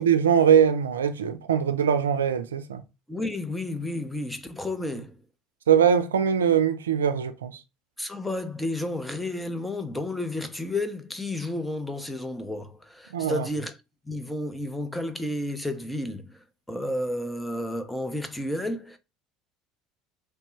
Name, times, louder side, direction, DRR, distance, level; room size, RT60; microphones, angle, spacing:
voice 1, 0.0-2.8 5.7-7.6 13.1-13.5, right 8 dB, 90° right, 0.3 m, -22 dB
voice 2, 3.1-5.2 8.0-13.8 14.1-19.0, left 1 dB, 5° left, 0.6 m, -31 dB
3.2 x 2.2 x 3.0 m
hypercardioid pair, 70°, 0 cm